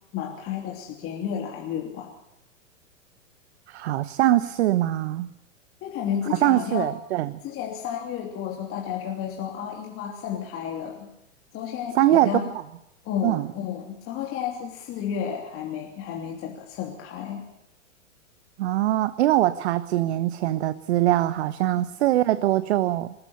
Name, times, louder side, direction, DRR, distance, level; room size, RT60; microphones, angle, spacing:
voice 1, 0.1-2.1 5.8-6.9 7.4-11.1 11.5-12.5 13.0-17.4 21.7-21.8, left 8 dB, 35° left, 0 dB, 3.1 m, -32 dB
voice 2, 3.7-5.3 6.3-7.4 11.9-12.4 13.2-13.5 18.6-23.1, right 14 dB, 55° right, 15 dB, 1.0 m, -22 dB
27.0 x 14.0 x 8.1 m, 0.86 s
hypercardioid pair, 110°, 39 cm